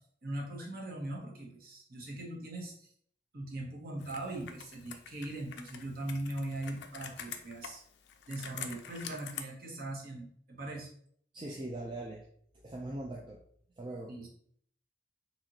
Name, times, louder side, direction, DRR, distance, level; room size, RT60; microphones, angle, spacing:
voice 1, 0.2-2.9 3.3-7.8 8.3-10.9 14.1-14.3, right 1 dB, 50° right, -1 dB, 0.9 m, -40 dB
Computer keyboard, 4.0-9.4, left 8 dB, 65° left, 0.4 m, -46 dB
voice 2, 11.3-12.2 12.6-13.4 13.8-14.1, right 1 dB, 25° right, -1 dB, 0.4 m, -40 dB
4.0 x 2.8 x 2.8 m, 0.62 s
head